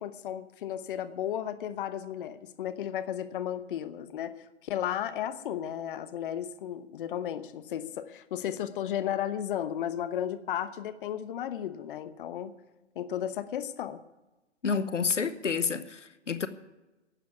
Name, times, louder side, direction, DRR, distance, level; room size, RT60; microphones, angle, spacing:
voice 1, 0.0-4.3 4.6-12.5 13.0-14.0, left 10 dB, 45° left, 1.0 m, -34 dB
voice 2, 14.6-16.5, left 5 dB, 85° left, 1.1 m, -29 dB
11.5 x 8.2 x 9.6 m
figure-of-eight pair, 125°, 36 cm